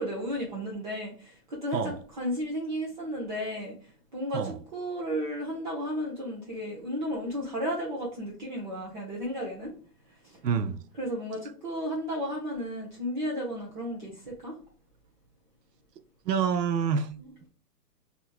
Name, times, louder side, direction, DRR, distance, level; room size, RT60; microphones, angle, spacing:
voice 1, 0.0-9.7 10.2-10.4 11.0-14.5 17.2-17.3, equal, 30° right, 0.8 m, -33 dB
voice 2, 10.4-10.8 16.3-17.1, right 7 dB, 85° right, 0.7 m, -27 dB
4.2 x 2.8 x 2.4 m
hypercardioid pair, 160°, 47 cm